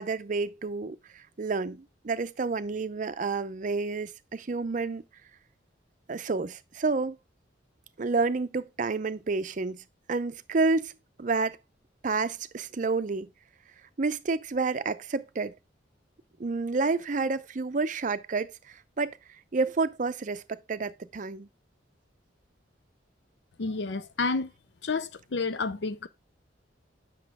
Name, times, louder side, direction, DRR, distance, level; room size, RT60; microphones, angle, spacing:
voice 1, 0.0-5.0 6.1-7.2 8.0-10.9 11.2-11.6 12.0-13.3 14.0-15.5 16.4-19.2 19.5-21.5, right 4 dB, 45° right, 0.5 m, -29 dB
voice 2, 23.6-24.5 24.8-26.1, left 4 dB, 65° left, 0.5 m, -30 dB
8.2 x 6.1 x 3.5 m
head